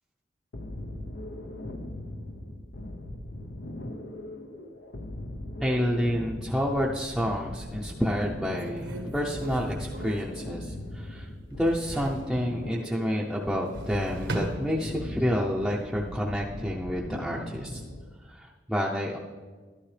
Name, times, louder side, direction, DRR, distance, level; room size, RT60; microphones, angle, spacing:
sound 1, 0.5-18.1, left 1 dB, 85° left, 0.8 m, -39 dB
voice 1, 5.6-17.8 18.3-19.2, equal, ahead, -4 dB, 0.6 m, -29 dB
sound 2, 6.6-7.6 8.1-8.2 8.6-11.2 11.5-12.3 13.5-15.2 15.7-16.3, right 1 dB, 85° right, 1.4 m, -39 dB
12.0 x 11.5 x 3.3 m, 1.4 s
head